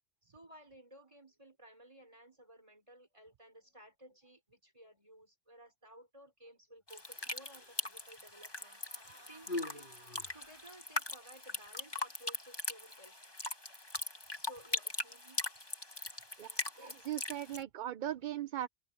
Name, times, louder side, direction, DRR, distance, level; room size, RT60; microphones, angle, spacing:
voice 1, 0.2-8.8 9.3-9.9 10.3-13.1 14.2-15.4 16.8-17.0, right 1 dB, 30° right, 5.3 m, -57 dB
sound 1, 6.9-17.6, left 2 dB, 25° left, 1.9 m, -41 dB
Human voice, 7.0-7.9 8.8-10.8 11.7-11.8, left 2 dB, 50° left, 4.1 m, -45 dB
voice 2, 17.1-18.7, right 12 dB, 55° right, 0.6 m, -38 dB
open air
omnidirectional pair, 1.1 m